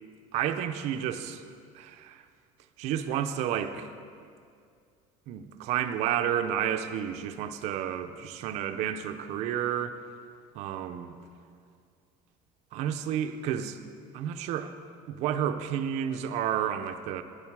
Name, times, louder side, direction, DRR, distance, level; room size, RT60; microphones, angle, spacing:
voice 1, 0.3-2.2 2.8-3.9 4.2-4.3 5.3-10.0 10.5-11.1 12.7-13.8 14.1-14.8 15.1-17.2, right 9 dB, 50° right, 8 dB, 0.5 m, -31 dB
11.0 x 9.8 x 4.7 m, 2.2 s
cardioid pair, 170°, 15 cm